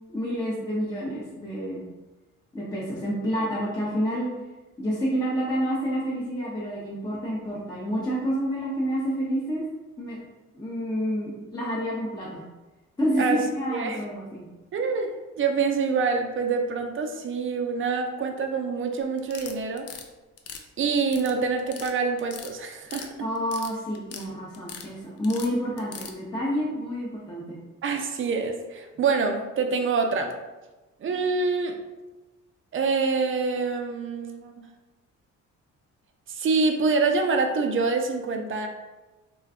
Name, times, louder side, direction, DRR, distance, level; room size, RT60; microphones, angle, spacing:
voice 1, 0.1-1.8 2.5-4.3 4.8-9.6 10.0-10.2 10.5-12.4 13.0-14.5 23.2-27.6, equal, 15° left, -7 dB, 0.6 m, -28 dB
voice 2, 14.7-15.1 15.4-19.8 20.8-23.1 27.8-30.3 31.0-31.8 32.7-34.6 36.3-38.7, right 4 dB, 45° right, 4 dB, 0.5 m, -26 dB
sound 1, 19.2-20.0 20.4-21.3 21.6-21.9 22.2-23.1 23.3-24.3 24.5-24.9 25.2-26.1, left 7 dB, 55° left, 0.4 m, -40 dB
2.5 x 2.3 x 3.5 m, 1.1 s
cardioid pair, 90°, 30 cm